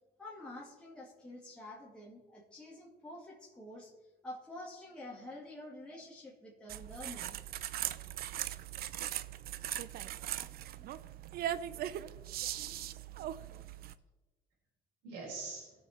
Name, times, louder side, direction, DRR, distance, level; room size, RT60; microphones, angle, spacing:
voice 1, 0.2-3.9 4.2-7.4, left 1 dB, 5° left, -5 dB, 2.1 m, -48 dB
sound 1, 6.7-13.9, right 12 dB, 65° right, 0.5 m, -39 dB
voice 2, 9.9-10.9 12.5-12.9 15.0-15.7, right 3 dB, 85° right, -4 dB, 3.9 m, -47 dB
18.0 x 6.3 x 4.3 m, 1.2 s
cardioid pair, 110°, 17 cm